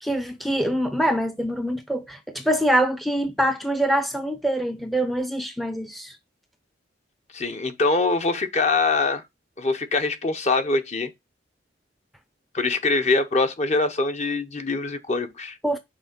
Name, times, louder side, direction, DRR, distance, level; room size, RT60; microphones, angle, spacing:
voice 1, 0.0-6.2 15.6-15.8, right 1 dB, ahead, 0.5 m, -24 dB
voice 2, 7.3-9.2 9.6-11.1 12.5-15.6, left 3 dB, 40° left, 0.8 m, -23 dB
6.1 x 3.8 x 5.8 m
head